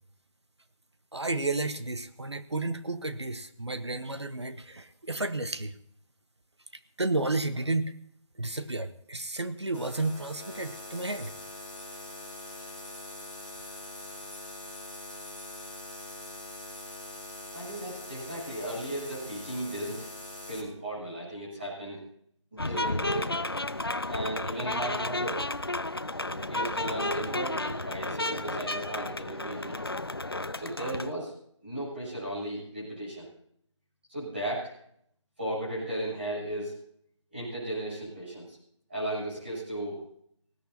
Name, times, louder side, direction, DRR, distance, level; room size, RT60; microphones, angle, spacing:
voice 1, 1.1-5.7 7.0-8.0 8.4-11.3, right 2 dB, 55° right, 11 dB, 1.2 m, -32 dB
sound 1, 9.7-20.6, left 1 dB, 20° left, 3.6 m, -43 dB
voice 2, 17.5-20.1 20.5-22.0 22.5-23.5 24.1-25.4 26.2-29.8 30.6-31.3 31.6-33.3 34.1-34.7 35.4-36.7 37.3-38.6 38.9-40.0, right 1 dB, 20° right, -9 dB, 7.8 m, -35 dB
sound 2, 22.6-31.1, left 2 dB, 50° left, 0.6 m, -32 dB
19.5 x 17.0 x 2.8 m, 0.67 s
figure-of-eight pair, 180°, 17 cm